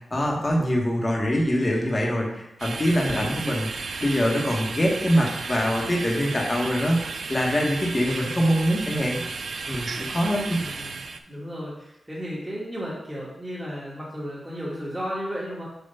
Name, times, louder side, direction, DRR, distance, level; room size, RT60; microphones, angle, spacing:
voice 1, 0.1-3.7 4.0-7.0 7.3-9.2 9.7-10.6, equal, 25° left, -2 dB, 1.4 m, -24 dB
sound 1, 2.6-11.2, right 4 dB, 65° right, 0.5 m, -34 dB
voice 2, 10.5-15.6, equal, 10° right, -7 dB, 1.5 m, -34 dB
6.9 x 2.8 x 5.6 m, 0.85 s
wide cardioid pair, 100°, 0 cm